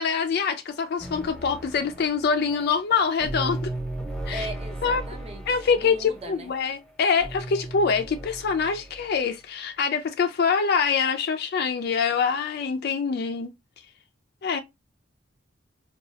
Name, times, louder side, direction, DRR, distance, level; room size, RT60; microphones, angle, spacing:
voice 1, 0.0-3.7 4.3-4.5 4.8-5.0 5.5-13.5 14.4-14.6, left 5 dB, 50° left, 0.3 m, -25 dB
sound 1, 1.0-9.2, right 1 dB, 5° left, 0.8 m, -36 dB
voice 2, 4.3-5.4 5.7-6.5, right 1 dB, 30° right, 0.6 m, -38 dB
4.0 x 2.3 x 2.7 m
head